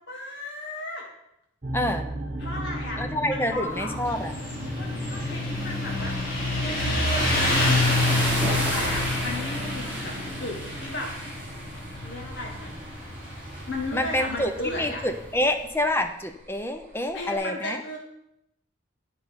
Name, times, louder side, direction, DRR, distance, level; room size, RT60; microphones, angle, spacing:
voice 1, 0.1-1.0 2.4-3.0 3.3-4.0 4.8-6.1 6.5-11.1 12.0-12.8 13.7-15.0 17.1-18.0, left 1 dB, 60° left, -1 dB, 1.4 m, -35 dB
sound 1, 1.6-17.4, right 1 dB, 40° right, 1.2 m, -39 dB
voice 2, 1.7-2.1 3.0-4.4 13.9-18.0, left 1 dB, 10° left, 6 dB, 0.6 m, -27 dB
sound 2, 3.5-15.7, equal, 5° right, 2.8 m, -33 dB
Motorcycle, 4.1-15.2, left 2 dB, 45° left, 2.3 m, -29 dB
9.3 x 5.6 x 5.2 m, 0.81 s
head